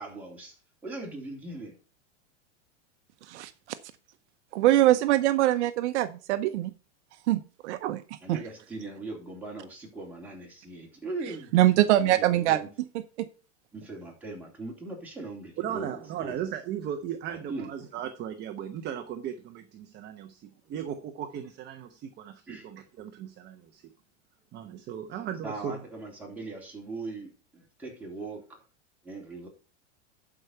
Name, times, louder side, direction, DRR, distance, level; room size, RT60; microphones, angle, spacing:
voice 1, 0.0-1.8 8.2-11.7 12.0-12.7 13.7-16.4 17.3-17.7 22.5-22.7 25.4-28.6 29.0-29.5, right 2 dB, 5° right, 3.5 m, -40 dB
voice 2, 4.5-6.7 7.3-8.0 8.3-8.4 11.5-12.6 13.2-13.3, right 14 dB, 70° right, 0.9 m, -23 dB
voice 3, 15.6-23.8 24.5-25.8, right 9 dB, 30° right, 0.9 m, -37 dB
11.5 x 4.9 x 5.5 m
supercardioid pair, 140°, 36 cm